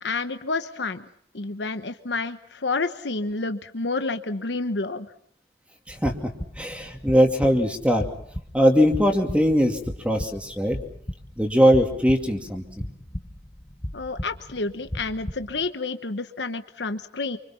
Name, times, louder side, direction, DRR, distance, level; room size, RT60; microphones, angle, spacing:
voice 1, 0.0-1.1 1.3-5.1 13.9-17.4, left 3 dB, 85° left, 10 dB, 1.1 m, -29 dB
sound 1, 5.9-15.7, left 1 dB, 25° left, 1.2 m, -37 dB
voice 2, 6.6-8.0 8.5-9.8 10.0-10.8 11.4-12.6, equal, 5° right, 3 dB, 2.5 m, -20 dB
28.0 x 25.5 x 5.8 m, 0.67 s
head